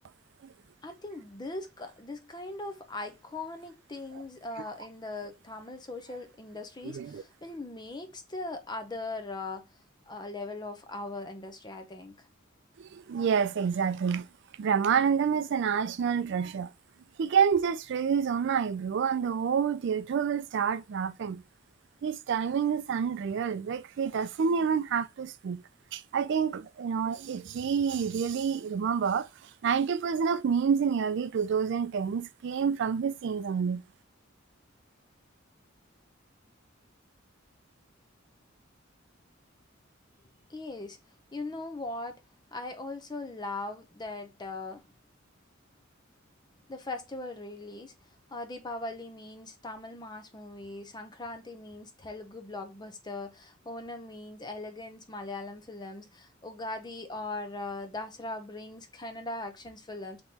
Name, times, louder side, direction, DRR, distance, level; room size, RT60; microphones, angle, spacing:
voice 1, 0.8-9.7 10.1-12.3 40.5-41.0 41.3-42.2 42.5-44.8 46.7-47.9 48.3-60.2, left 2 dB, 20° left, 0.6 m, -40 dB
voice 2, 6.8-7.2 12.8-14.3 14.6-16.7 17.2-21.4 22.0-25.6 25.9-29.3 29.6-33.8, right 6 dB, 60° right, 0.3 m, -28 dB
3.7 x 2.9 x 4.1 m
head